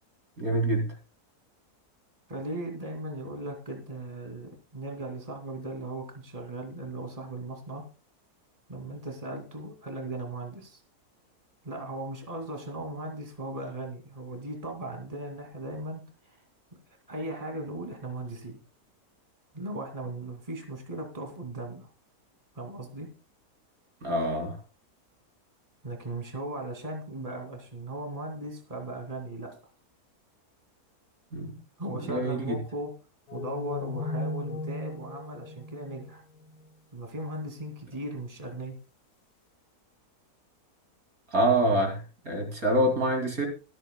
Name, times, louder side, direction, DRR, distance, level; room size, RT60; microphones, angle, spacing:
voice 1, 0.4-0.8 24.0-24.5 31.3-31.5 32.1-32.4 41.3-42.0 42.2-43.5, right 1 dB, 65° right, 3 dB, 3.3 m, -25 dB
voice 2, 2.3-7.8 8.7-10.8 11.6-16.4 17.1-18.6 19.5-21.9 22.5-23.1 25.8-29.5 31.8-32.9 33.3-36.2 36.9-38.8, right 1 dB, 25° right, 3 dB, 2.7 m, -37 dB
sound 1, 33.3-36.7, left 3 dB, 90° left, 1.5 m, -36 dB
25.0 x 9.0 x 2.3 m, 0.31 s
omnidirectional pair, 1.6 m